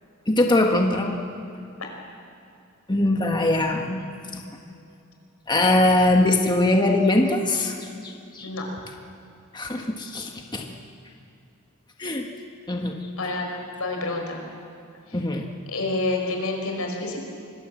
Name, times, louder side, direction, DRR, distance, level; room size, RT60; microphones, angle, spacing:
voice 1, 0.3-1.2 2.9-4.4 5.5-8.5 9.5-10.7 12.0-12.3 12.7-13.0 15.1-15.5, left 2 dB, 20° left, 2 dB, 1.4 m, -22 dB
voice 2, 13.2-13.5 13.8-14.4 15.1-15.2 15.7-17.2, left 2 dB, 85° left, 2 dB, 5.3 m, -28 dB
25.0 x 20.5 x 7.8 m, 2.5 s
head